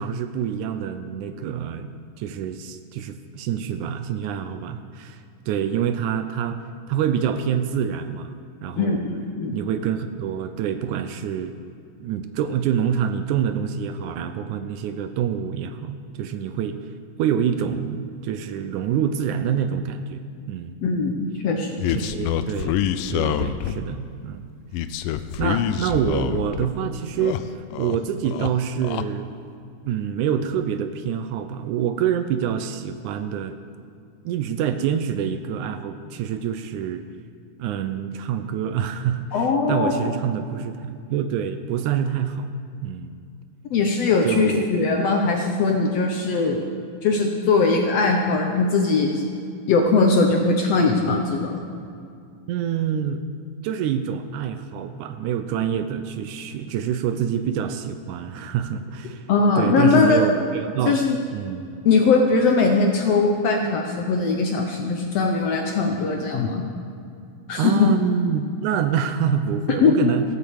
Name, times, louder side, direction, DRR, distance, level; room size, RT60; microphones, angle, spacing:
voice 1, 0.0-1.9 2.2-5.2 5.5-6.6 6.9-8.3 8.6-9.0 9.5-11.5 12.0-16.8 17.2-20.2 20.5-20.8 21.9-24.5 25.4-29.3 29.9-33.6 34.3-37.0 37.6-42.5 42.8-43.1 44.2-44.7 52.5-53.2 53.6-59.3 59.6-61.0 61.3-61.7 67.6-70.2, right 8 dB, 80° right, 9 dB, 2.0 m, -26 dB
voice 2, 8.8-9.6 20.8-22.1 39.3-40.1 43.7-46.6 47.0-49.2 49.7-51.6 59.3-60.3 60.9-61.2 61.8-66.7 67.5-67.9 69.8-70.1, left 4 dB, 70° left, 2 dB, 1.6 m, -20 dB
sound 1, 21.8-23.9 24.7-26.7 27.0-28.0 28.3-29.0, left 10 dB, 85° left, 2.2 m, -26 dB
15.0 x 8.5 x 7.2 m, 2.4 s
omnidirectional pair, 3.7 m